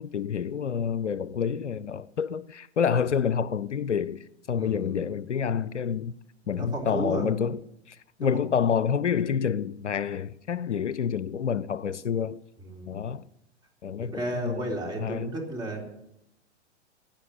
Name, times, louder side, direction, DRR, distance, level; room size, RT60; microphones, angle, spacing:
voice 1, 0.0-6.1 6.5-7.6 7.9-12.4 12.9-13.3 13.8-14.7 15.0-15.3, left 7 dB, 75° left, 0.6 m, -28 dB
voice 2, 4.6-5.0 6.5-7.4 8.2-8.4 12.6-13.0 14.0-15.8, right 1 dB, 10° right, 3.8 m, -33 dB
16.5 x 10.5 x 6.8 m
figure-of-eight pair, 105°, 35 cm